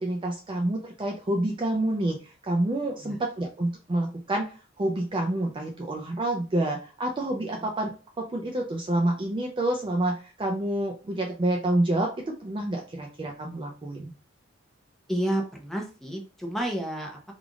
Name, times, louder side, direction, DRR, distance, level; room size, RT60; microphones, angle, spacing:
voice 1, 0.0-4.5 4.8-14.1, right 1 dB, 25° right, 1 dB, 0.4 m, -28 dB
voice 2, 15.1-17.3, right 1 dB, ahead, 0 dB, 0.7 m, -31 dB
3.3 x 2.5 x 3.6 m, 0.36 s
head